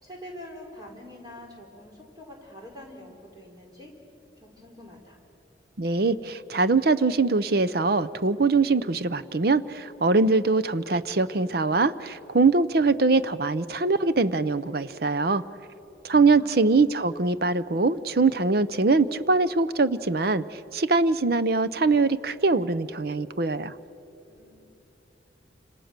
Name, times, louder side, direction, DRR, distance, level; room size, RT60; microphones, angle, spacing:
voice 1, 0.0-3.9 4.4-5.2 16.1-16.7 24.3-24.6, left 1 dB, 20° right, -1 dB, 4.6 m, -45 dB
voice 2, 5.8-15.4 16.0-23.7, right 3 dB, 55° right, 15 dB, 0.7 m, -23 dB
29.5 x 26.5 x 6.7 m, 3.0 s
head